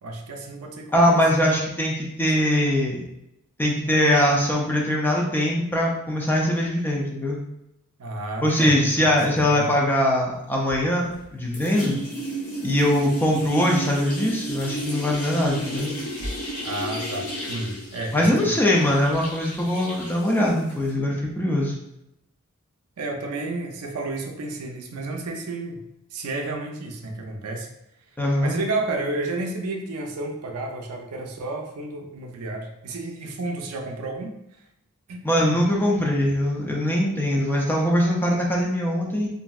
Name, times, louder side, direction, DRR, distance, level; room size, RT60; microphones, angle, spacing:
voice 1, 0.0-1.2 8.0-9.8 16.6-18.6 23.0-25.8 26.1-27.7 28.4-34.3 35.1-35.6, right 2 dB, 75° right, 3 dB, 0.5 m, -31 dB
voice 2, 0.9-3.0 3.6-7.4 8.4-12.0 12.6-15.9 18.1-21.7 28.2-28.6 35.2-39.3, left 1 dB, 10° left, -2 dB, 0.4 m, -22 dB
sound 1, 10.7-11.3 11.5-20.9, right 1 dB, 80° left, 1.0 m, -33 dB
3.0 x 2.6 x 2.3 m, 0.85 s
head